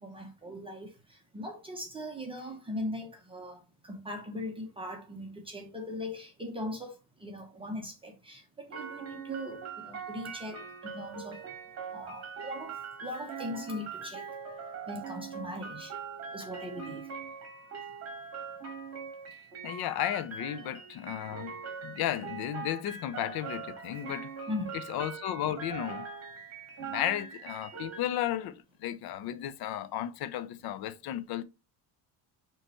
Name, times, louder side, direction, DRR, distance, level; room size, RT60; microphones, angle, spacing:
voice 1, 0.0-6.9 7.2-11.4 11.9-14.3 14.9-15.9 16.3-17.1 20.6-20.8 24.5-24.7, left 1 dB, 10° right, 1.0 m, -40 dB
sound 1, 8.7-28.0, right 6 dB, 35° right, 2.2 m, -42 dB
voice 2, 19.6-24.3 24.9-26.1 26.8-31.4, left 12 dB, 55° left, 0.6 m, -34 dB
6.8 x 3.2 x 4.4 m
cardioid pair, 165°, 44 cm